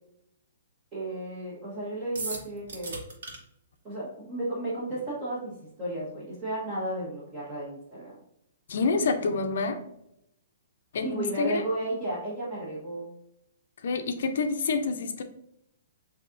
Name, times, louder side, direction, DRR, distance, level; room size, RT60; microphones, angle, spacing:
voice 1, 0.9-2.9 3.8-8.2 11.0-13.0, right 1 dB, 15° right, -8 dB, 1.2 m, -33 dB
sound 1, 2.1-3.4, right 3 dB, 65° right, 1.4 m, -36 dB
voice 2, 8.7-9.8 10.9-11.6 13.8-15.2, left 4 dB, 60° left, 6 dB, 0.6 m, -27 dB
7.0 x 2.8 x 2.5 m, 0.78 s
hypercardioid pair, 170°, 0 cm